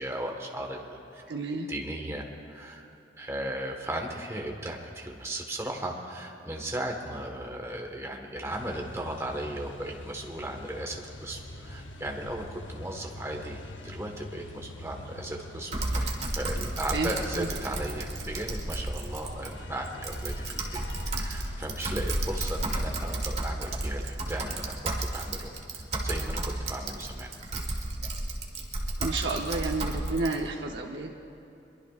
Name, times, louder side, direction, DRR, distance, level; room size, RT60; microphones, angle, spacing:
voice 1, 0.0-1.2 1.7-2.9 3.2-26.4 26.7-27.3, right 1 dB, 15° right, 1 dB, 1.5 m, -36 dB
voice 2, 1.3-1.7 16.9-17.5 29.0-31.1, right 3 dB, 70° right, 1 dB, 0.9 m, -31 dB
sound 1, 8.5-23.0, left 1 dB, 85° left, 0.9 m, -45 dB
Typing, 15.7-30.4, right 2 dB, 35° right, 1.6 m, -33 dB
23.0 x 22.5 x 2.5 m, 2.7 s
head